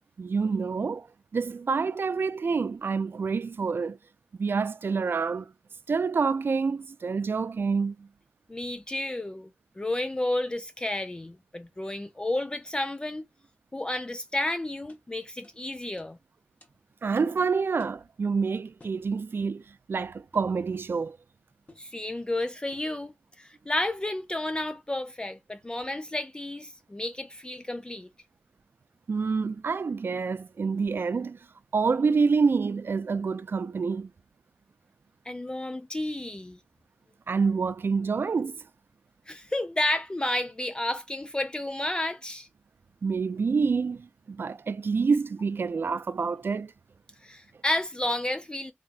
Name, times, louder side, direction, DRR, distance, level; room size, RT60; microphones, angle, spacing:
voice 1, 0.2-1.1 1.3-4.0 4.4-5.5 5.9-8.1 17.0-19.6 19.9-21.2 29.1-31.4 31.7-34.1 37.3-38.6 43.0-46.7, right 5 dB, 60° right, 0.3 m, -27 dB
voice 2, 8.5-9.5 9.8-13.3 13.7-16.2 21.8-28.1 35.3-36.6 39.3-42.5 47.2-48.7, left 1 dB, 20° left, 0.4 m, -31 dB
sound 1, 14.5-14.6 14.9-15.0 15.4-15.6 16.0-16.1 16.6-16.7 17.2-17.4 17.8-18.0 18.8-19.0 20.3-20.6 21.7-21.9 22.7-23.0, left 2 dB, 35° left, 1.2 m, -55 dB
3.3 x 2.8 x 2.4 m
wide cardioid pair, 65°, 4 cm